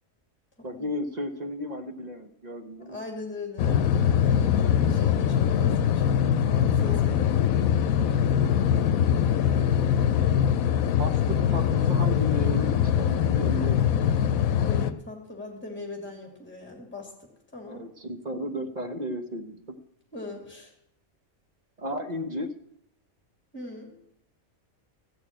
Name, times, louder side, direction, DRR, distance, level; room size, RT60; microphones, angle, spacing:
voice 1, 0.6-3.0 6.9-7.1 10.9-14.0 17.6-19.8 21.8-22.5, equal, 35° right, 6 dB, 1.1 m, -34 dB
voice 2, 2.8-7.5 14.6-17.1 17.5-17.9 20.1-20.7 23.5-23.9, left 3 dB, 10° left, 1 dB, 2.6 m, -40 dB
sound 1, 3.6-14.9, left 9 dB, 80° left, 1.1 m, -23 dB
14.5 x 6.6 x 8.9 m, 0.76 s
omnidirectional pair, 1.4 m